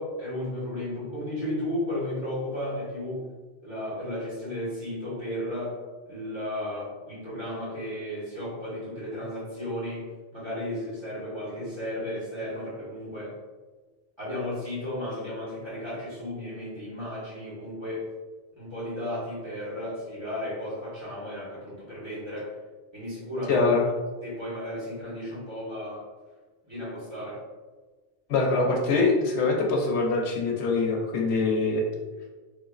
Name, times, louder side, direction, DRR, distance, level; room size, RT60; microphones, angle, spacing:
voice 1, 0.0-3.3 3.6-5.8 6.1-10.1 10.3-13.3 14.2-18.1 18.6-22.5 22.9-23.6 24.2-26.1 26.7-27.4, left 1 dB, 25° right, -8 dB, 1.4 m, -34 dB
voice 2, 23.5-23.8 28.3-31.8, left 3 dB, 75° left, 0 dB, 0.8 m, -23 dB
3.5 x 2.9 x 2.4 m, 1.3 s
omnidirectional pair, 1.1 m